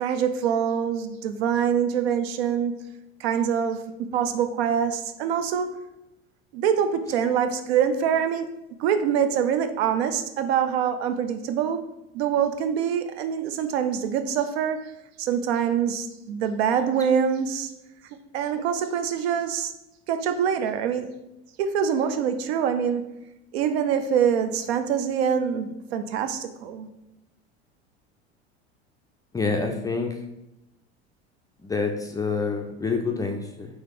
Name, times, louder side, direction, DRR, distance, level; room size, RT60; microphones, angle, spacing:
voice 1, 0.0-2.8 3.2-5.7 6.5-14.8 15.2-17.7 18.3-19.7 20.1-21.1 21.6-23.2 23.5-26.9, right 8 dB, 70° right, 9 dB, 0.5 m, -25 dB
voice 2, 29.3-30.1 31.6-33.7, left 4 dB, 10° left, 2 dB, 0.3 m, -27 dB
3.6 x 3.0 x 3.5 m, 0.91 s
hypercardioid pair, 75°, 33 cm